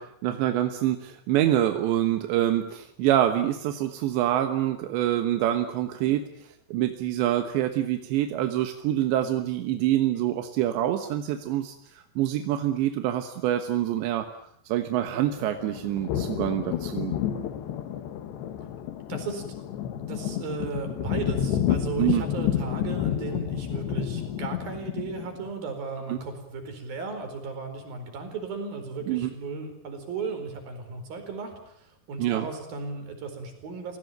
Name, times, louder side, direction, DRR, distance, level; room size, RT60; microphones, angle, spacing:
voice 1, 0.0-6.3 6.7-14.3 14.7-17.2 22.0-22.2 26.1-26.2 29.1-29.3 32.2-32.5, right 12 dB, 85° right, 7 dB, 3.5 m, -26 dB
sound 1, 15.1-25.5, left 10 dB, 75° left, 3.7 m, -30 dB
voice 2, 19.1-19.4 20.1-34.0, right 4 dB, 55° right, 6 dB, 6.1 m, -35 dB
29.0 x 18.0 x 9.2 m, 0.74 s
omnidirectional pair, 5.0 m